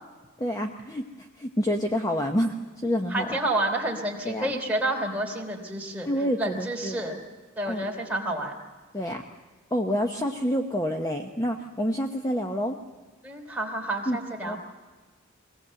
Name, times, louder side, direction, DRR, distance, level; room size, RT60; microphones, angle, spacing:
voice 1, 0.4-2.6 2.8-3.4 4.2-4.5 6.1-7.0 7.7-7.9 8.9-9.2 9.7-12.8 14.1-14.2 14.4-14.6, equal, 15° left, 3 dB, 0.9 m, -28 dB
voice 2, 3.1-6.1 6.4-7.2 7.6-8.6 13.2-14.6, right 1 dB, 10° right, -1 dB, 3.3 m, -29 dB
23.5 x 17.5 x 7.7 m, 1.3 s
head